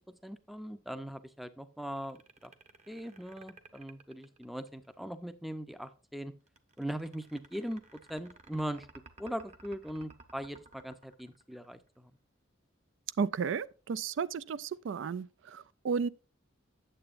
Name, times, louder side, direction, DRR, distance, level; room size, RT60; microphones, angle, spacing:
voice 1, 0.2-2.2 2.4-2.5 2.9-6.3 6.8-7.8 8.1-8.9 9.2-12.1, equal, ahead, 0.5 m, -40 dB
sound 1, 1.9-5.0 6.5-12.0, right 3 dB, 35° right, 0.9 m, -56 dB
voice 2, 13.2-16.1, right 6 dB, 65° right, 0.3 m, -33 dB
8.9 x 7.6 x 2.5 m
head